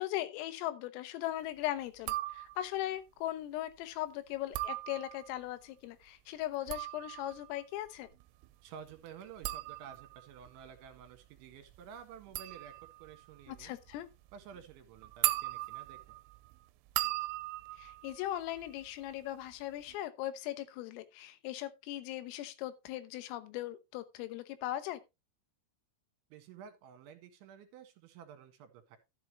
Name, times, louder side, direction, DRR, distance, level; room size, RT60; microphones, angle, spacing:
voice 1, 0.0-8.1 13.5-14.1 17.8-25.0, left 14 dB, 85° left, 3.7 m, -39 dB
sound 1, 2.0-2.8 4.3-5.4 6.4-19.1 19.4-20.0, right 18 dB, 85° right, 3.3 m, -39 dB
voice 2, 8.6-13.8 14.3-16.2 26.3-29.0, right 8 dB, 70° right, 3.8 m, -52 dB
13.5 x 8.0 x 3.0 m
omnidirectional pair, 5.8 m